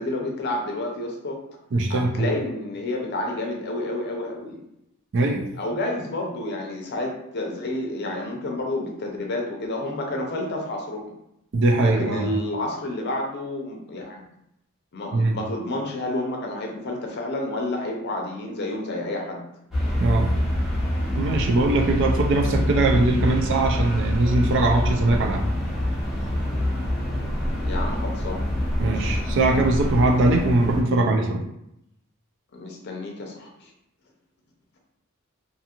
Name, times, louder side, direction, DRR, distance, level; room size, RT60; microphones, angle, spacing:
voice 1, 0.0-1.4 1.9-4.6 5.6-11.1 11.8-14.2 14.9-19.4 27.6-28.4 28.8-29.1 32.5-33.7, left 1 dB, 50° left, 1 dB, 0.6 m, -30 dB
voice 2, 1.7-2.3 5.1-5.5 11.5-12.3 15.1-15.4 20.0-20.3 21.1-25.4 28.8-31.4, right 2 dB, 60° right, 2 dB, 0.4 m, -21 dB
sound 1, 19.7-30.8, left 1 dB, ahead, 0.8 m, -25 dB
2.6 x 2.4 x 2.9 m, 0.81 s
head